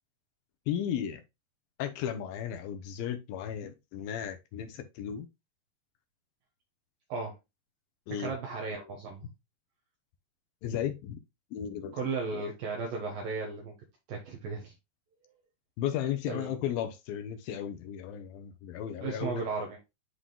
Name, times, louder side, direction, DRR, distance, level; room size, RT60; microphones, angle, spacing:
voice 1, 0.7-1.2 1.8-5.3 8.1-8.3 10.6-11.2 11.5-12.0 15.8-19.4, left 10 dB, 75° left, 2.2 m, -35 dB
voice 2, 8.2-9.3 11.9-13.8 14.1-14.7 16.3-16.5 19.0-19.8, right 4 dB, 65° right, 2.7 m, -35 dB
11.5 x 3.8 x 2.3 m
omnidirectional pair, 4.8 m